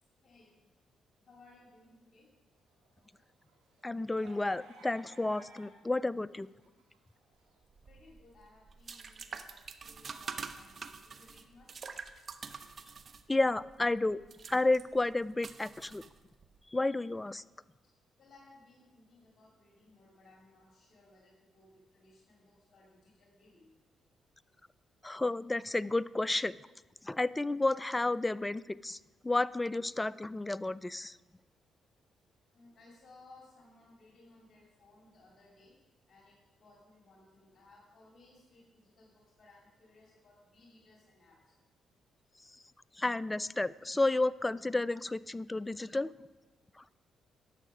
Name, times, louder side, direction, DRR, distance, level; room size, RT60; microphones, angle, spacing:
voice 1, 0.2-0.6 1.2-2.3 7.9-9.6 9.8-12.0 18.2-23.7 32.5-35.8 36.1-41.3, left 2 dB, 45° left, -4 dB, 2.6 m, -61 dB
sound 1, 2.7-5.9 6.3-7.6, right 3 dB, 85° right, 1.8 m, -58 dB
voice 2, 3.8-6.5 13.3-14.2 14.5-16.0 16.7-17.4 25.0-26.5 27.0-29.0 29.2-31.2 43.0-46.1, left 2 dB, 20° left, 19 dB, 0.3 m, -31 dB
sound 2, 7.7-16.6, right 5 dB, 50° right, 0.7 m, -46 dB
10.5 x 7.4 x 5.0 m, 1.2 s
supercardioid pair, 55°, 0 cm